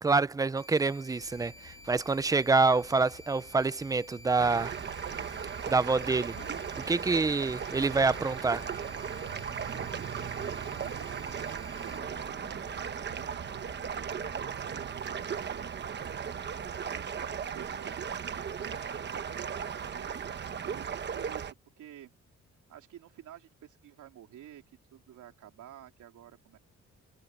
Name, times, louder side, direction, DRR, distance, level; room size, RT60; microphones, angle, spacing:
voice 1, 0.0-4.7 5.7-6.4 6.7-8.6, right 3 dB, 10° right, 0.5 m, -27 dB
sound 1, 0.6-12.0, left 1 dB, 10° left, 3.8 m, -52 dB
sound 2, 1.2-14.4, left 11 dB, 85° left, 3.8 m, -55 dB
sound 3, 4.4-21.5, right 7 dB, 35° right, 1.1 m, -37 dB
voice 2, 10.7-13.8 14.4-15.9 17.5-20.1 20.7-22.1 22.7-26.6, right 11 dB, 85° right, 3.4 m, -52 dB
cardioid pair, 165°, 30 cm